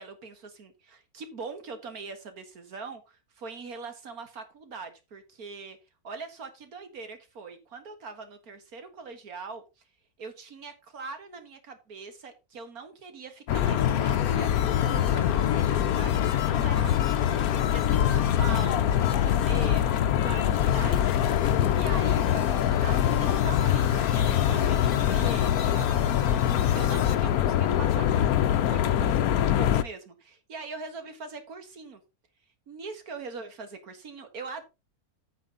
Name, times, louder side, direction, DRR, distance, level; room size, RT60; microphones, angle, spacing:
voice 1, 0.0-5.8 6.0-9.6 10.2-17.2 17.7-21.5 21.7-26.4 26.7-32.0 32.7-34.6, right 4 dB, 80° right, 8 dB, 2.0 m, -42 dB
sound 1, 13.5-29.8, left 10 dB, 85° left, 1.2 m, -24 dB
sound 2, 13.5-27.2, left 8 dB, 50° left, 0.8 m, -37 dB
8.8 x 8.2 x 3.8 m, 0.27 s
omnidirectional pair, 1.5 m